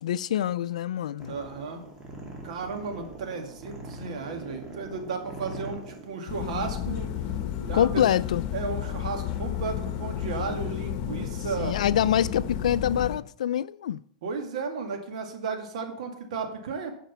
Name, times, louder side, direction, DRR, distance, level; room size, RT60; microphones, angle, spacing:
voice 1, 0.0-1.4 7.7-8.4 11.6-14.0, left 10 dB, 85° left, 0.4 m, -25 dB
sound 1, 1.2-7.8, right 2 dB, 20° right, 2.5 m, -43 dB
voice 2, 1.3-1.8 2.4-7.1 7.6-8.0 8.5-11.8 14.2-16.9, right 4 dB, 75° right, 2.0 m, -34 dB
sound 2, 6.3-13.2, left 10 dB, 50° left, 1.0 m, -32 dB
9.0 x 5.1 x 5.8 m
hypercardioid pair, 120°, 4 cm